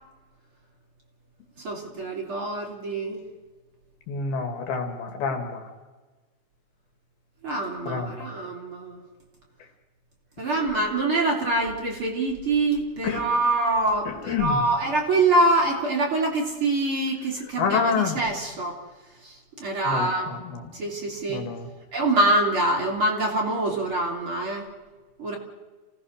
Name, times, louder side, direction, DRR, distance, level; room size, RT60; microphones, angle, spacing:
voice 1, 1.6-3.2 7.4-9.0 10.4-18.8 19.2-20.3 20.7-21.4 21.9-24.7 25.2-25.4, right 2 dB, 35° right, -1 dB, 3.5 m, -25 dB
voice 2, 4.1-5.6 7.9-8.1 13.0-13.2 14.3-14.5 17.6-18.2 19.9-20.1 21.3-21.6, left 6 dB, 65° left, 5 dB, 3.9 m, -27 dB
28.5 x 18.0 x 6.6 m, 1.3 s
omnidirectional pair, 4.7 m